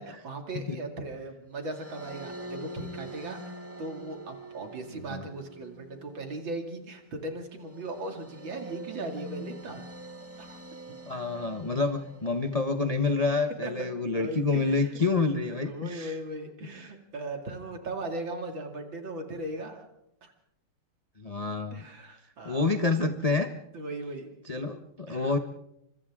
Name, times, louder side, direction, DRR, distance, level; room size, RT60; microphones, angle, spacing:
voice 1, 0.0-9.9 10.4-10.6 13.6-13.9 14.1-15.0 15.3-19.9 20.2-20.3 21.7-22.8 23.7-24.3 25.1-25.3, right 2 dB, 60° right, 4 dB, 3.2 m, -38 dB
sound 1, 1.6-12.9, equal, 10° right, 1.1 m, -45 dB
voice 2, 11.1-16.1 21.2-21.8 22.4-23.5 24.5-25.4, left 3 dB, 40° left, 6 dB, 0.5 m, -28 dB
30.0 x 26.0 x 3.7 m, 0.80 s
omnidirectional pair, 2.4 m